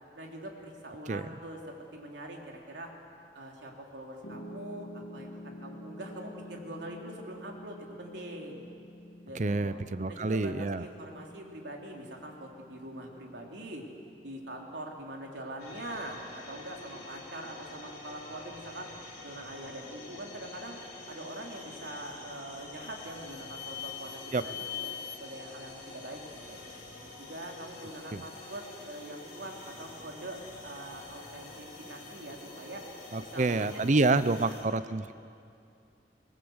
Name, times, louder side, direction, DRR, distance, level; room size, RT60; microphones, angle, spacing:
voice 1, 0.1-1.6 1.9-2.9 3.3-8.7 9.2-9.8 10.1-13.8 14.2-18.9 19.2-20.8 21.1-26.2 26.5-26.6 27.2-32.8 33.2-34.7, right 1 dB, 80° right, 0 dB, 3.3 m, -43 dB
Piano, 4.2-16.4, left 1 dB, 90° left, 1.8 m, -49 dB
voice 2, 9.4-10.9 24.3-24.4 28.1-28.2 33.1-35.1, right 3 dB, 40° right, 14 dB, 0.6 m, -28 dB
sound 1, 15.6-34.6, left 2 dB, 50° left, 5.2 m, -47 dB
sound 2, 20.8-21.1 21.5-22.0 22.5-25.2, left 10 dB, 70° left, 1.6 m, -43 dB
24.0 x 19.0 x 8.0 m, 2.5 s
head